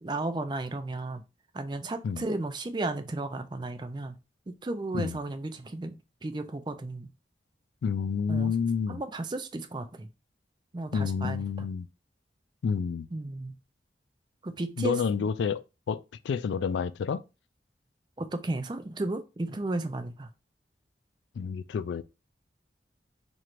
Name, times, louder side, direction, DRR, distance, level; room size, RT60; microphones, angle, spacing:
voice 1, 0.0-1.2 1.5-4.2 4.5-7.1 8.3-8.5 8.9-10.1 10.7-11.7 13.1-13.5 14.4-15.0 18.2-20.3, right 2 dB, 25° right, 0.4 m, -34 dB
voice 2, 7.8-9.0 10.9-11.9 12.6-13.1 14.8-17.2 21.4-22.0, left 6 dB, 80° left, 0.3 m, -29 dB
4.3 x 3.1 x 2.5 m
head